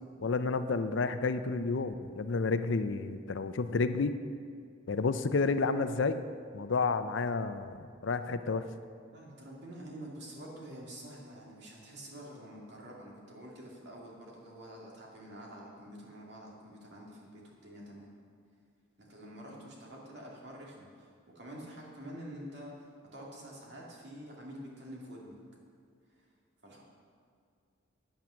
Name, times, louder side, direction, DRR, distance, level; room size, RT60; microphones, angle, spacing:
voice 1, 0.2-4.1 4.9-6.2 6.5-8.6, left 4 dB, 70° left, 10 dB, 0.5 m, -30 dB
voice 2, 9.1-18.1 19.0-25.4 26.2-26.3 26.6-26.8, equal, 55° right, -3 dB, 2.3 m, -47 dB
9.2 x 8.9 x 6.3 m, 2.3 s
head